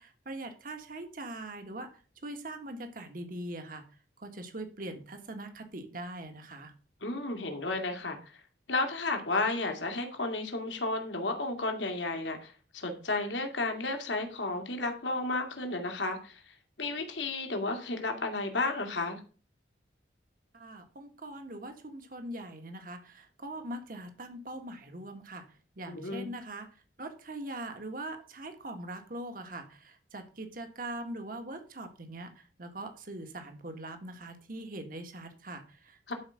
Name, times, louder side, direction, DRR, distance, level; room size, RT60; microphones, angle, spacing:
voice 1, 0.0-1.9 2.2-3.8 4.2-6.7 20.5-25.4 25.8-26.7 27.0-36.1, right 1 dB, 50° right, 6 dB, 1.6 m, -42 dB
voice 2, 7.0-8.2 8.7-16.4 16.8-19.2 25.9-26.3 36.1-36.2, left 2 dB, 85° left, 4 dB, 2.1 m, -32 dB
11.5 x 4.8 x 6.2 m, 0.38 s
head